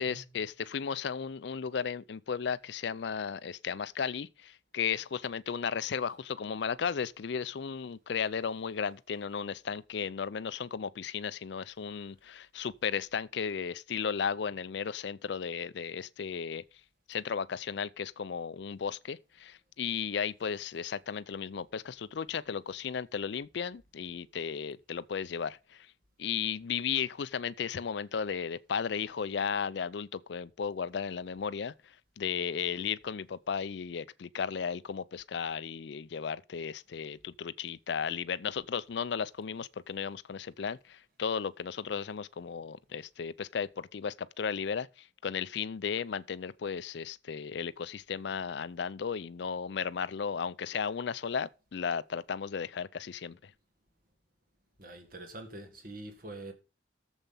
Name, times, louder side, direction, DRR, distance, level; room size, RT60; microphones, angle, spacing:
voice 1, 0.0-16.6 17.1-25.9 26.2-53.5, left 6 dB, 60° left, 0.4 m, -35 dB
voice 2, 54.8-56.5, right 1 dB, 45° right, 1.8 m, -45 dB
8.7 x 7.2 x 5.6 m
head